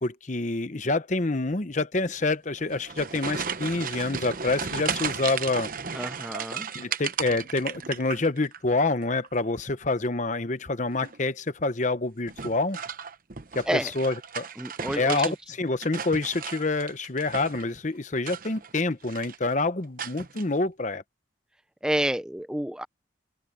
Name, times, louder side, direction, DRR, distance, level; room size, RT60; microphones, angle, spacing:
voice 1, 0.0-5.7 6.7-12.8 13.5-14.5 14.9-21.0, left 3 dB, 40° left, 0.9 m, -27 dB
sound 1, 2.6-8.6 8.9-9.5 10.9-11.3 12.3-15.4 15.7-17.7 18.2-18.8 19.0-19.5 20.0-20.4, right 6 dB, 45° right, 1.0 m, -35 dB
voice 2, 5.9-6.6 13.7-13.9 14.6-15.3 21.8-22.8, right 1 dB, 5° right, 0.4 m, -29 dB
open air
head